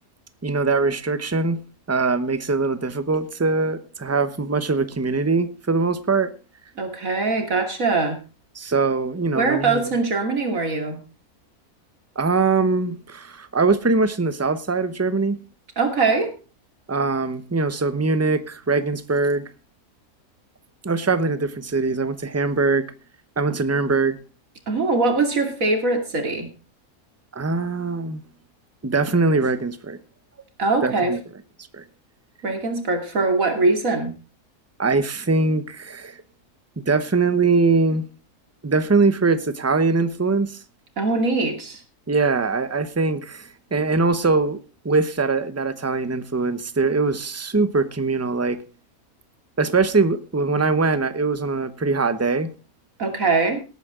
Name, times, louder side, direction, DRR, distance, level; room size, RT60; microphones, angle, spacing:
voice 1, 0.4-1.6 1.9-6.3 8.5-9.8 12.2-15.4 16.9-19.4 20.8-22.9 23.4-24.2 27.3-28.2 28.8-30.0 30.8-31.2 31.7-31.8 34.8-36.2 36.8-38.0 38.6-40.6 42.1-44.6 44.8-48.6 49.6-52.5, right 3 dB, 15° right, 0.7 m, -22 dB
voice 2, 6.8-8.2 9.4-11.0 15.8-16.3 24.7-26.5 30.6-31.1 32.4-34.1 41.0-41.8 53.0-53.6, right 3 dB, 60° right, 3.0 m, -22 dB
18.0 x 9.4 x 3.7 m
omnidirectional pair, 1.6 m